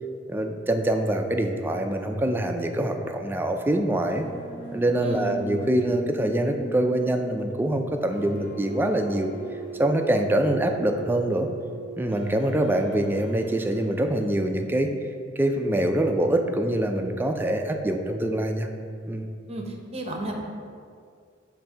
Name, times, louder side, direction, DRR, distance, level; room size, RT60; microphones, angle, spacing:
voice 1, 0.3-4.3 4.7-9.3 9.8-11.5 12.0-14.9 15.4-18.7 19.1-19.3, right 1 dB, 10° right, 4 dB, 0.4 m, -24 dB
sound 1, 3.3-14.3, right 4 dB, 70° left, 1.2 m, -40 dB
voice 2, 5.0-5.3 19.5-20.4, right 1 dB, 35° right, 1 dB, 0.8 m, -33 dB
7.3 x 2.6 x 5.5 m, 2.2 s
head